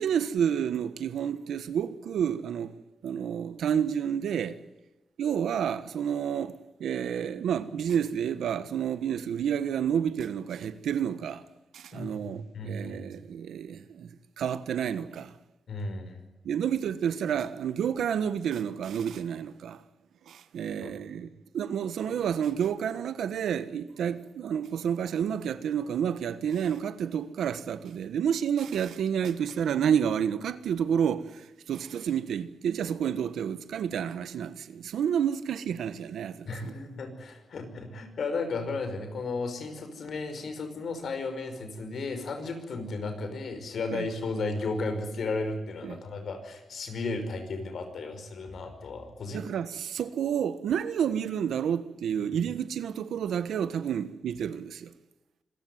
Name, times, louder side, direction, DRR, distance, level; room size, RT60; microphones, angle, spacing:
voice 1, 0.0-2.7 3.0-4.6 5.2-6.5 6.8-11.4 11.7-14.1 14.4-15.3 16.4-19.8 20.3-21.3 21.5-36.7 43.9-44.0 45.8-46.0 49.3-54.9, right 8 dB, 85° right, 1.3 m, -30 dB
voice 2, 11.9-13.0 15.7-16.2 20.8-21.0 36.5-49.5, left 3 dB, 70° left, 5.4 m, -34 dB
26.0 x 15.0 x 9.5 m
cardioid pair, 70°, 0 cm